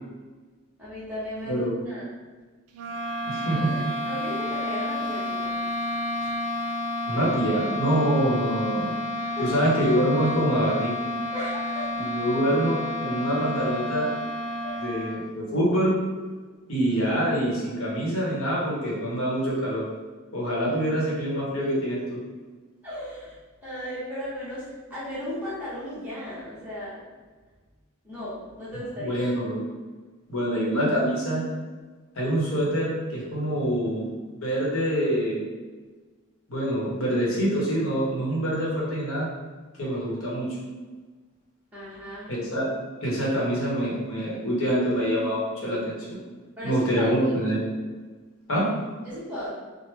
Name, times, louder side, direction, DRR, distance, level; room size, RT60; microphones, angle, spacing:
voice 1, 0.8-2.1 3.5-5.5 9.2-9.5 11.3-12.0 14.6-14.8 22.8-23.3 23.6-27.0 28.0-29.2 41.7-42.3 46.6-47.1 49.0-49.5, equal, 5° right, -11 dB, 0.9 m, -36 dB
sound 1, 2.7-15.4, left 1 dB, 90° right, 0.4 m, -30 dB
voice 2, 3.3-3.9 7.1-8.9 9.4-10.9 12.0-14.1 14.8-15.9 16.7-19.8 20.3-22.2 29.0-29.6 30.3-31.4 32.2-34.1 34.4-35.4 36.5-39.3 39.8-40.5 42.3-42.7 43.0-46.2 46.6-47.7 48.5-48.7, equal, 65° left, -5 dB, 0.9 m, -25 dB
3.2 x 2.1 x 3.2 m, 1.3 s
head